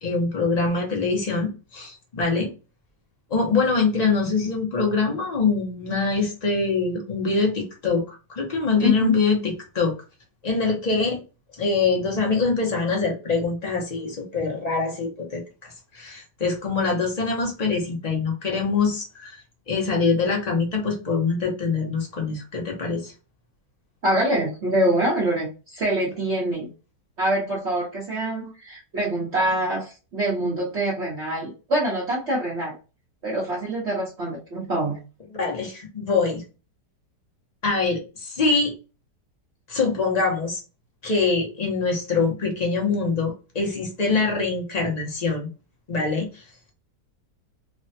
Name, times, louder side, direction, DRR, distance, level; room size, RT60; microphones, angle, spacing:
voice 1, 0.0-2.5 3.3-10.0 10.4-11.2 11.6-19.4 19.7-23.1 35.3-36.4 37.6-38.7 39.7-40.6 41.0-45.5 45.9-46.4, left 4 dB, 50° left, 0.5 m, -24 dB
voice 2, 24.0-26.7 27.2-32.7 33.2-35.0, right 1 dB, 45° right, 1.0 m, -25 dB
3.3 x 2.1 x 2.6 m
omnidirectional pair, 1.9 m